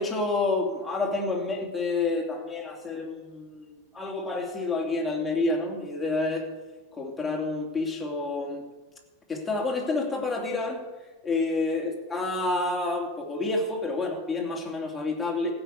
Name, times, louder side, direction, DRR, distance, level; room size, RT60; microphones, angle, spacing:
voice 1, 0.0-3.7 3.9-6.4 6.9-8.6 9.3-10.8 11.2-15.5, left 3 dB, 10° left, -1 dB, 2.7 m, -29 dB
15.0 x 6.0 x 8.4 m, 1.2 s
figure-of-eight pair, 90°, 0 cm